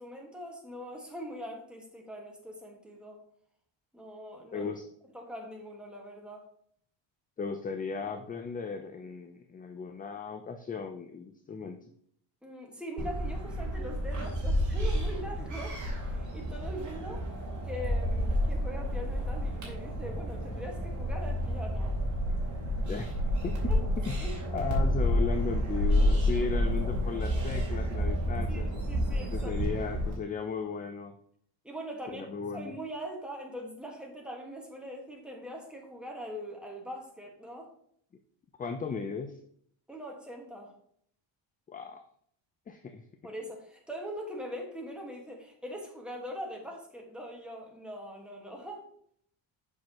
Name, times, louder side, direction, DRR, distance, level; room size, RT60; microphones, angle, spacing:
voice 1, 0.0-3.2 3.9-4.7 5.1-6.4 12.4-17.3 17.6-22.0 23.7-23.8 24.2-24.4 28.5-29.5 31.6-32.3 32.5-37.7 39.9-40.7 43.2-48.9, equal, ahead, -1 dB, 1.6 m, -42 dB
voice 2, 4.5-4.8 7.4-11.8 22.9-23.2 23.4-23.6 24.0-24.2 24.5-28.7 29.3-31.1 32.1-32.7 38.6-39.4 41.7-42.0 42.7-43.0, left 5 dB, 20° left, 7 dB, 0.3 m, -36 dB
sound 1, 13.0-30.1, equal, 40° right, 2.8 m, -30 dB
7.5 x 6.0 x 3.0 m, 0.65 s
cardioid pair, 125°, 47 cm